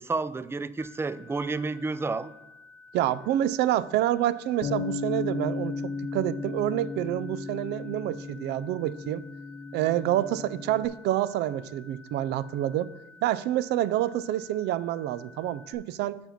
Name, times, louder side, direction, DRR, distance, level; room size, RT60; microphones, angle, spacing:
voice 1, 0.0-2.3 3.0-3.1, right 3 dB, 15° right, 16 dB, 0.4 m, -31 dB
sound 1, 0.8-15.7, left 3 dB, 15° left, 1.3 m, -53 dB
voice 2, 2.9-9.2 9.7-12.9 13.2-16.2, right 13 dB, 80° right, 17 dB, 0.4 m, -28 dB
Bass guitar, 4.6-10.9, left 4 dB, 55° left, 0.8 m, -35 dB
7.1 x 5.3 x 5.8 m, 0.95 s
cardioid pair, 110°, 17 cm